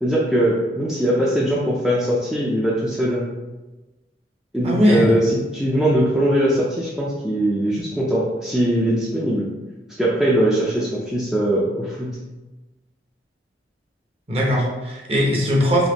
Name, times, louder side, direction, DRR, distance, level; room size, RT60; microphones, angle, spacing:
voice 1, 0.0-3.2 4.5-9.5 10.0-12.2, right 1 dB, 5° right, -6 dB, 0.4 m, -21 dB
voice 2, 4.6-5.0 14.3-15.9, equal, 35° right, -2 dB, 0.8 m, -19 dB
4.1 x 3.0 x 2.9 m, 1.1 s
head